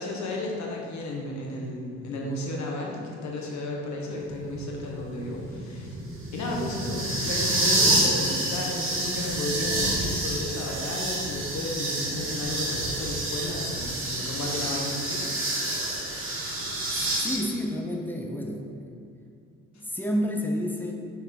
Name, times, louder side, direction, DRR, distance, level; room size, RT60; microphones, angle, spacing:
voice 1, 0.0-5.9 6.3-15.5 19.7-19.8, left 2 dB, 65° left, -1 dB, 1.2 m, -33 dB
sound 1, 4.2-17.3, right 1 dB, 45° right, 1.4 m, -28 dB
voice 2, 17.2-18.9 19.7-20.9, equal, 5° left, 1 dB, 0.7 m, -30 dB
6.0 x 4.4 x 3.7 m, 2.5 s
cardioid pair, 90°, 30 cm